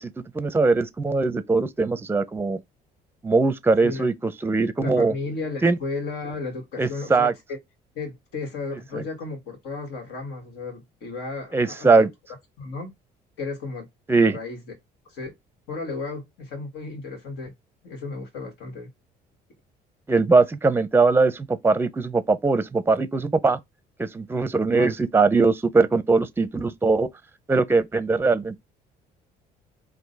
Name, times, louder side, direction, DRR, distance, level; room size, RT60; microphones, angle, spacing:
voice 1, 0.0-2.6 3.2-5.1 5.6-5.8 6.8-7.3 8.9-9.0 11.5-12.1 14.1-14.4 20.1-23.6 24.0-27.1 27.5-28.6, right 3 dB, 15° right, 0.5 m, -21 dB
voice 2, 4.8-7.6 8.0-12.1 12.6-12.9 13.4-13.9 14.1-14.6 15.1-15.3 15.7-17.5 17.8-18.9 24.7-24.9, left 3 dB, 85° left, 1.9 m, -34 dB
3.8 x 2.7 x 4.0 m
cardioid pair, 110°, 17 cm